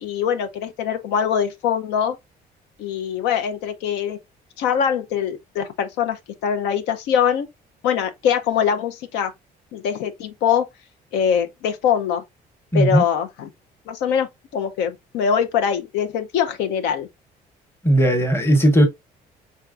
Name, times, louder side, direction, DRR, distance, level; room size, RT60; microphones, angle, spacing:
voice 1, 0.0-2.2 2.8-4.2 4.6-7.5 7.8-9.3 9.7-10.7 11.1-12.2 12.7-13.5 13.9-17.1, left 8 dB, 90° left, 0.6 m, -23 dB
voice 2, 12.7-13.0 17.8-18.9, right 1 dB, 15° left, 1.0 m, -16 dB
4.5 x 3.5 x 2.4 m
cardioid pair, 110°, 17 cm